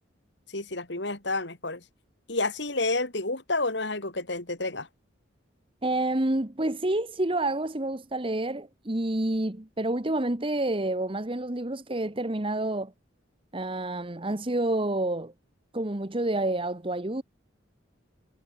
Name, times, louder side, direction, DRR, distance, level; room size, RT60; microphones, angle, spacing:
voice 1, 0.5-1.8 2.3-4.9, left 2 dB, 60° left, 3.5 m, -29 dB
voice 2, 5.8-12.9 13.5-15.3 15.7-17.2, right 1 dB, 25° right, 1.2 m, -28 dB
head